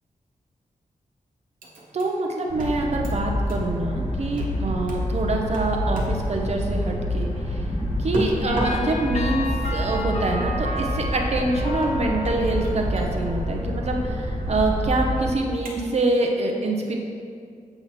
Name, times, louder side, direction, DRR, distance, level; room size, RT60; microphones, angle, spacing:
sound 1, 1.6-2.2 2.6-3.7 4.4-4.6 4.9-5.1 5.5-6.3 8.1-8.9 10.7-10.8 11.8-13.1 15.7-16.1, equal, 85° right, 1.1 m, -34 dB
voice 1, 1.9-7.6 8.0-17.0, right 2 dB, 50° right, 1 dB, 0.6 m, -25 dB
sound 2, 2.5-15.3, equal, 35° left, 1.3 m, -27 dB
sound 3, 8.5-14.0, left 1 dB, 55° left, 0.7 m, -33 dB
7.9 x 2.9 x 5.7 m, 2.3 s
wide cardioid pair, 120°, 14 cm